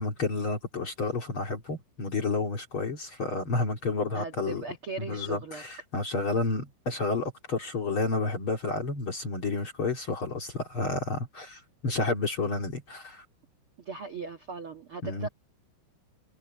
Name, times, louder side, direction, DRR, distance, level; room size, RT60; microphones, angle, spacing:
voice 1, 0.0-4.6 5.0-13.2 15.0-15.3, left 3 dB, 40° left, 2.2 m, -30 dB
voice 2, 4.1-5.6 13.8-15.3, right 3 dB, 75° right, 1.2 m, -38 dB
omnidirectional pair, 5.3 m